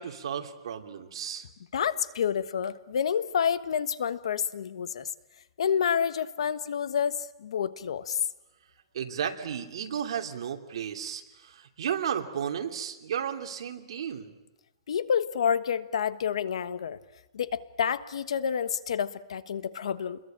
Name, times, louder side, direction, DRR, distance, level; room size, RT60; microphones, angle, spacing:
voice 1, 0.0-1.4 8.9-11.2 11.5-14.3, right 8 dB, 65° right, 4 dB, 2.8 m, -33 dB
voice 2, 1.7-5.1 5.6-8.2 14.9-17.0 17.3-20.2, left 7 dB, 80° left, 14 dB, 1.3 m, -29 dB
29.0 x 22.0 x 8.9 m, 0.99 s
hypercardioid pair, 175°, 3 cm